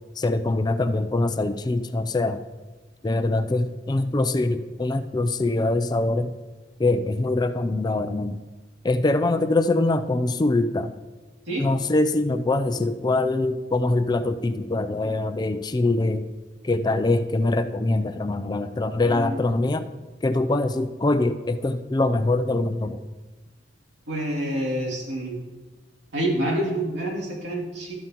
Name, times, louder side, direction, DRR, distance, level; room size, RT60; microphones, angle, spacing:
voice 1, 0.2-2.4 3.0-6.3 6.8-8.4 8.8-11.0 11.6-16.3 16.6-19.9 20.2-23.0, left 2 dB, 25° left, 9 dB, 0.4 m, -23 dB
voice 2, 19.0-19.4 24.1-25.4 26.1-27.9, right 1 dB, 85° right, -3 dB, 2.6 m, -27 dB
12.5 x 8.9 x 3.0 m, 1.2 s
head